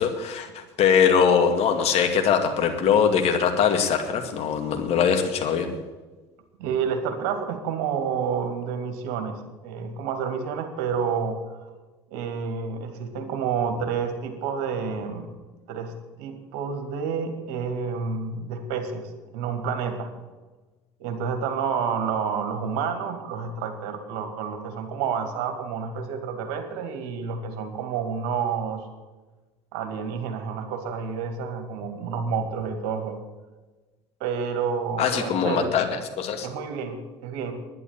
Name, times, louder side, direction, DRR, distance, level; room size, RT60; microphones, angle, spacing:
voice 1, 0.0-5.7 35.0-35.9 36.2-36.5, left 7 dB, 50° left, 6 dB, 2.2 m, -22 dB
voice 2, 6.6-11.4 12.1-15.3 15.7-20.1 21.0-28.8 29.7-33.2 34.2-35.7 36.4-37.5, right 6 dB, 65° right, 6 dB, 2.3 m, -29 dB
11.0 x 10.5 x 8.9 m, 1.2 s
hypercardioid pair, 65°, 13 cm